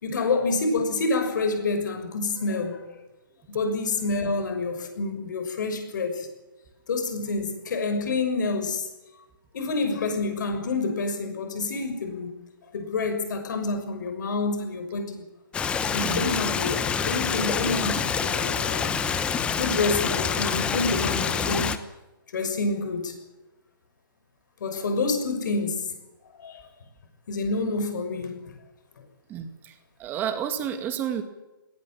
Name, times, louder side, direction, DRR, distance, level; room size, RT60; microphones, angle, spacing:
voice 1, 0.0-3.0 3.5-6.3 6.9-8.9 9.5-12.3 12.7-15.3 15.9-19.0 19.6-21.8 22.3-23.2 24.6-25.9 26.3-26.7 27.3-28.5 29.0-29.1, left 3 dB, 55° left, 7 dB, 6.2 m, -28 dB
Stream, 15.5-21.8, left 6 dB, 10° left, 0.9 m, -26 dB
voice 2, 29.3-29.7 30.0-31.2, right 9 dB, 15° right, 8 dB, 2.2 m, -30 dB
20.0 x 17.5 x 8.9 m, 1.0 s
hypercardioid pair, 155°, 12 cm